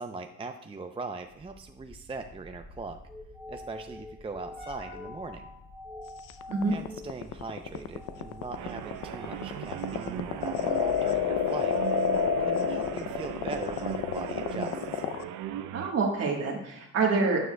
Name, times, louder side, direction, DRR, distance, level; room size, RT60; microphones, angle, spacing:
voice 1, 0.0-3.0 3.5-5.5 6.7-11.8 12.4-15.0, right 3 dB, 20° right, 6 dB, 0.5 m, -40 dB
sound 1, 1.3-14.6, left 1 dB, 5° left, 1.8 m, -47 dB
sound 2, 6.3-15.2, left 7 dB, 85° left, 0.6 m, -29 dB
sound 3, 8.5-15.9, right 11 dB, 85° right, 0.5 m, -38 dB
voice 2, 15.7-17.4, right 4 dB, 55° right, -1 dB, 1.4 m, -26 dB
12.5 x 7.0 x 2.2 m, 0.85 s
cardioid pair, 90°, 30 cm